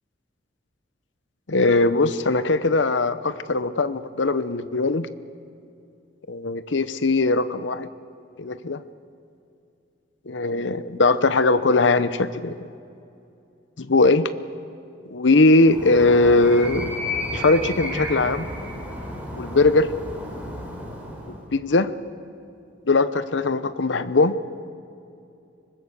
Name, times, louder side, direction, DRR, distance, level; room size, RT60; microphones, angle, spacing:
voice 1, 1.5-5.1 6.3-7.9 8.4-8.8 10.3-12.5 13.8-14.3 15.1-17.0 17.3-18.5 19.3-19.9 21.5-21.9 22.9-24.3, left 3 dB, 70° left, 13 dB, 0.9 m, -20 dB
Animal, 15.6-21.4, left 1 dB, 10° right, 4.2 m, -32 dB
24.0 x 20.5 x 6.8 m, 2.6 s
head